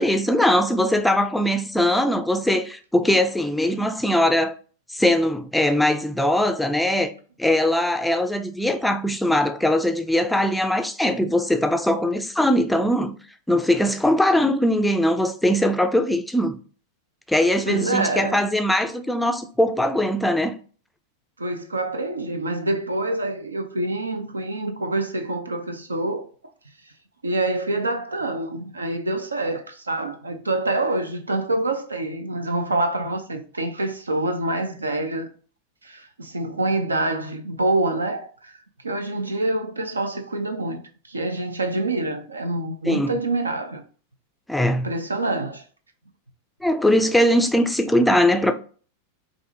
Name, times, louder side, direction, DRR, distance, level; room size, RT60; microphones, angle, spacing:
voice 1, 0.0-4.5 4.9-7.1 7.4-13.1 13.5-16.6 17.3-20.6 42.8-43.1 44.5-44.9 46.6-48.5, left 1 dB, 5° left, 0.4 m, -21 dB
voice 2, 17.7-18.4 21.4-26.2 27.2-35.3 35.8-38.6 38.8-43.8 44.8-45.6, right 2 dB, 80° right, 0.5 m, -26 dB
4.7 x 2.6 x 2.5 m
figure-of-eight pair, 90°, 0 cm